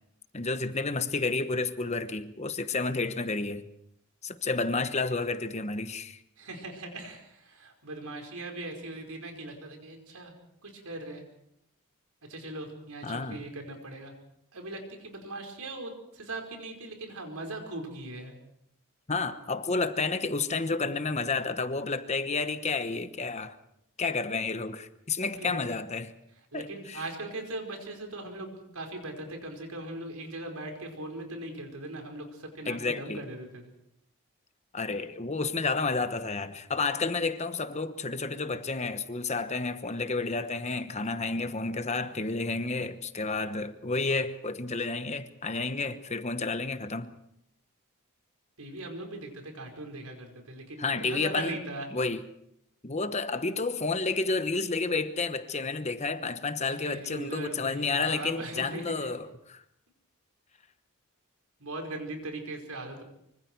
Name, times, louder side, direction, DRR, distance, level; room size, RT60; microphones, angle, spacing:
voice 1, 0.3-3.6 4.2-6.2 13.0-13.4 19.1-23.6 24.0-26.1 26.5-27.0 32.7-33.2 34.7-47.1 50.8-51.6 51.9-52.3 52.8-59.6, left 3 dB, 30° left, 1.1 m, -31 dB
voice 2, 6.4-10.3 10.6-11.2 12.3-14.1 14.5-18.4 25.4-25.6 26.5-33.7 48.6-51.9 56.6-59.1 61.6-63.0, right 2 dB, 80° right, 5.2 m, -40 dB
25.0 x 24.5 x 4.7 m
head